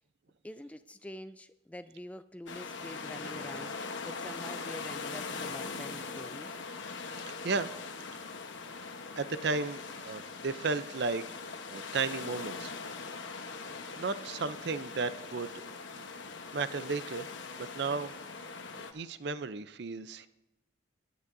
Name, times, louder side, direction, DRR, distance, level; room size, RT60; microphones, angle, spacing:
voice 1, 0.4-6.6, left 1 dB, 5° left, 12 dB, 0.4 m, -46 dB
sound 1, 2.5-18.9, left 4 dB, 75° left, 1.1 m, -41 dB
voice 2, 9.2-11.2 11.7-12.7 14.0-16.0 16.5-17.3 17.5-18.4 18.8-20.3, right 4 dB, 60° right, 13 dB, 0.5 m, -34 dB
18.0 x 11.0 x 2.6 m, 0.93 s
head